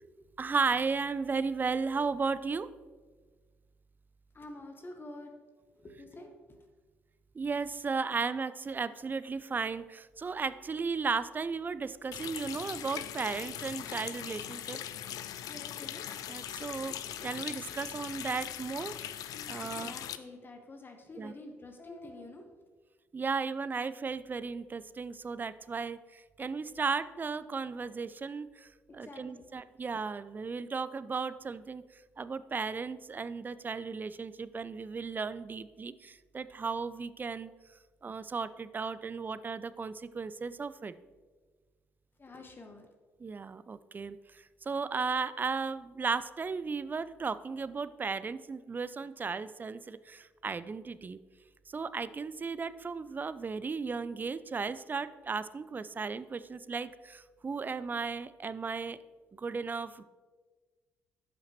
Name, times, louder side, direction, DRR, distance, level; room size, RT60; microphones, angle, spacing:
voice 1, 0.4-2.7 7.3-14.8 16.3-16.9 17.2-19.0 19.5-20.0 21.2-21.3 23.1-31.8 32.2-37.5 38.0-40.9 43.2-51.2 51.7-59.0 59.4-60.0, right 4 dB, 25° right, 14 dB, 0.4 m, -35 dB
voice 2, 4.3-5.3 5.8-6.3 15.5-16.0 19.6-22.5 28.9-29.5 42.2-42.9, left 2 dB, 30° left, 4 dB, 1.0 m, -48 dB
Water tap faucet, 12.1-20.2, left 11 dB, 60° left, 0.4 m, -40 dB
13.0 x 5.7 x 2.9 m, 1.4 s
figure-of-eight pair, 45°, 7 cm